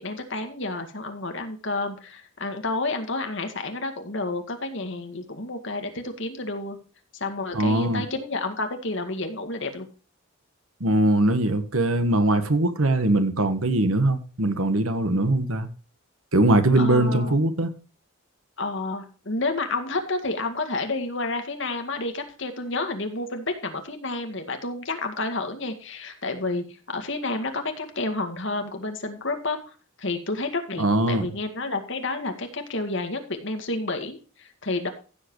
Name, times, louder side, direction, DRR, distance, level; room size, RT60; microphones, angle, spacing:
voice 1, 0.0-6.8 7.2-9.9 16.8-17.4 18.6-29.6 30.0-34.9, left 2 dB, 60° left, 2.1 m, -30 dB
voice 2, 7.5-8.0 10.8-15.7 16.3-17.7 30.8-31.3, right 1 dB, 75° right, 1.5 m, -21 dB
15.5 x 7.8 x 3.2 m
head